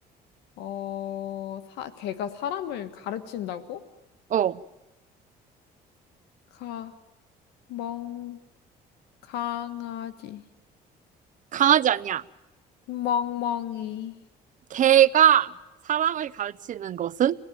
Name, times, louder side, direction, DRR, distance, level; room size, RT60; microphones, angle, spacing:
voice 1, 0.6-3.8 6.6-6.9 7.7-8.4 9.3-10.4 12.9-14.2, left 10 dB, 85° left, 11 dB, 1.6 m, -32 dB
voice 2, 11.5-12.2 14.7-15.5 15.9-17.4, right 10 dB, 50° right, 15 dB, 0.9 m, -21 dB
26.0 x 19.0 x 9.3 m, 1.0 s
cardioid pair, 110°, 17 cm